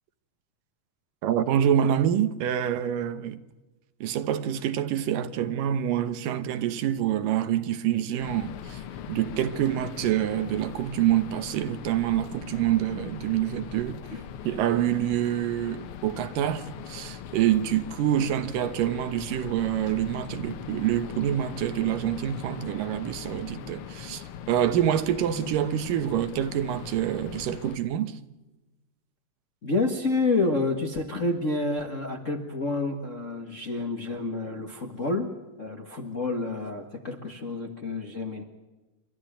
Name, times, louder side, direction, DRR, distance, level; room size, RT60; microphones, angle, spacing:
voice 1, 1.2-3.4 4.0-8.8 9.1-14.0 14.4-28.2, right 11 dB, 80° right, 2.8 m, -26 dB
sound 1, 8.2-27.8, left 9 dB, 80° left, 1.2 m, -40 dB
voice 2, 29.6-35.3 35.6-38.4, left 3 dB, 35° left, 1.2 m, -29 dB
29.0 x 13.0 x 9.0 m
omnidirectional pair, 3.8 m